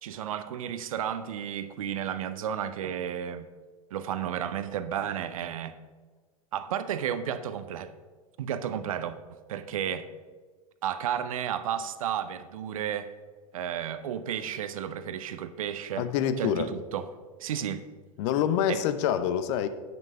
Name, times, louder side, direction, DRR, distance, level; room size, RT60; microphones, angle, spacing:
voice 1, 0.0-3.5 3.9-5.7 6.5-7.9 8.4-9.2 9.5-10.1 10.8-13.1 13.5-16.1 16.4-17.1 17.4-17.8 18.7-18.8, right 9 dB, 65° right, 12 dB, 0.7 m, -32 dB
voice 2, 16.0-16.7 18.2-19.7, left 9 dB, 50° left, 12 dB, 0.7 m, -26 dB
8.9 x 6.1 x 5.6 m, 1.4 s
figure-of-eight pair, 90°, 19 cm